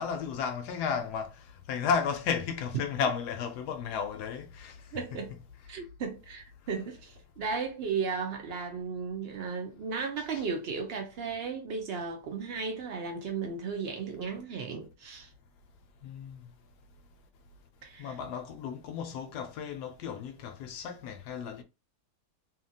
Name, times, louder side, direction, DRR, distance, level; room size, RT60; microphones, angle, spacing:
voice 1, 0.0-5.0 16.0-16.5 18.0-21.6, left 6 dB, 80° left, 1.1 m, -33 dB
voice 2, 4.9-5.3 5.7-15.3 17.8-18.2, right 5 dB, 90° right, 0.5 m, -35 dB
2.7 x 2.7 x 2.6 m
omnidirectional pair, 1.8 m